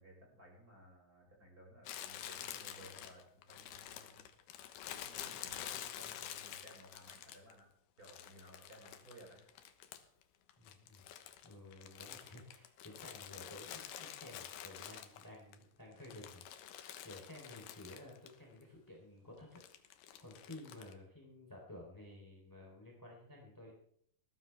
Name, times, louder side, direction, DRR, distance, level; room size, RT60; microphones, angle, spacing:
voice 1, 0.0-4.3 4.9-7.7 8.0-9.4, right 1 dB, 20° right, -1 dB, 5.9 m, -58 dB
Crumpling crinkling, 1.8-7.6 8.0-10.2 10.5-15.5 15.9-18.4 18.6-18.7 19.6-20.9, left 11 dB, 75° left, 2.4 m, -48 dB
voice 2, 10.6-16.4 17.0-19.6 20.2-23.7, left 1 dB, 5° left, -1 dB, 2.1 m, -53 dB
20.5 x 14.5 x 3.4 m, 0.67 s
omnidirectional pair, 5.6 m